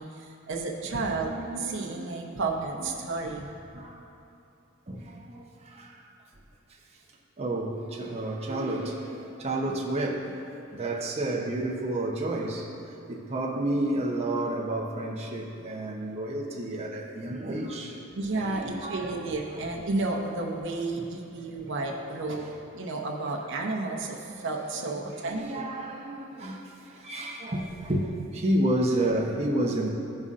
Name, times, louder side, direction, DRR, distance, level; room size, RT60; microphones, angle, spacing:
voice 1, 0.0-3.5 18.1-22.5 22.7-25.6, right 3 dB, 60° right, 0 dB, 0.8 m, -32 dB
voice 2, 3.7-4.0 4.9-6.0 7.4-18.0 18.3-19.4 20.9-21.0 21.4-21.7 24.7-29.9, right 1 dB, 30° right, -2 dB, 0.7 m, -31 dB
15.0 x 5.4 x 2.5 m, 2.6 s
head